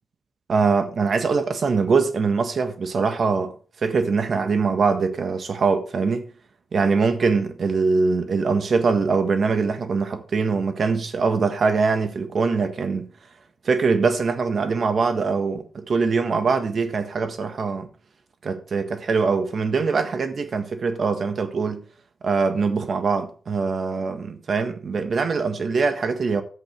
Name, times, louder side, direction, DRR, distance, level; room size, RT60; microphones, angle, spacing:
voice 1, 0.5-6.3 6.7-13.1 13.6-17.9 18.4-21.8 22.2-26.4, right 4 dB, 50° right, 1.5 m, -23 dB
11.5 x 8.1 x 4.5 m
wide cardioid pair, 150°, 0 cm